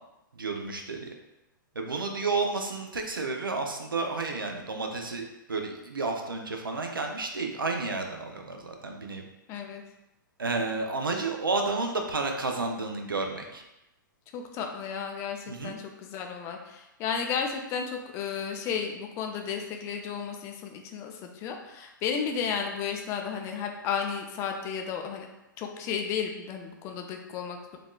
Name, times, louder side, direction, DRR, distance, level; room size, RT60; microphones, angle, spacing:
voice 1, 0.3-1.1 1.7-9.2 10.4-13.6 15.5-15.7, right 3 dB, 80° right, 3 dB, 0.5 m, -31 dB
voice 2, 9.5-9.8 14.3-25.3 25.6-27.8, left 7 dB, 25° left, 3 dB, 0.3 m, -33 dB
3.4 x 2.4 x 2.2 m, 0.94 s
figure-of-eight pair, 110°, 11 cm